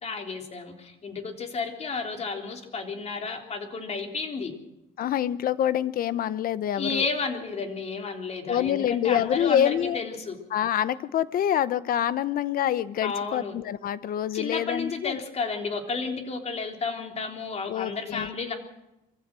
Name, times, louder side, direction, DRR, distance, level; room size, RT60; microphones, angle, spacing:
voice 1, 0.0-4.5 6.8-10.4 13.0-13.5 14.3-18.6, left 4 dB, 40° left, 4 dB, 3.7 m, -32 dB
voice 2, 5.0-7.1 8.5-10.0 10.5-15.2 17.7-18.3, left 10 dB, 60° left, 16 dB, 1.0 m, -26 dB
24.0 x 15.5 x 7.7 m, 0.93 s
cardioid pair, 110°, 17 cm